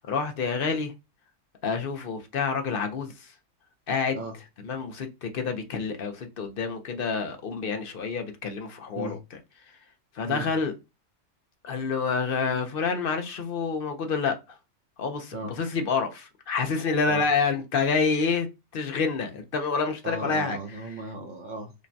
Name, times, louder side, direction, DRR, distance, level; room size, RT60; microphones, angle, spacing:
voice 1, 0.1-0.9 1.6-3.3 3.9-4.2 4.6-9.2 10.2-10.7 11.6-14.3 15.0-18.5 18.7-20.6, left 5 dB, 55° left, 0.7 m, -28 dB
voice 2, 20.0-21.7, right 2 dB, 50° right, 0.6 m, -36 dB
5.0 x 2.2 x 2.6 m
omnidirectional pair, 1.3 m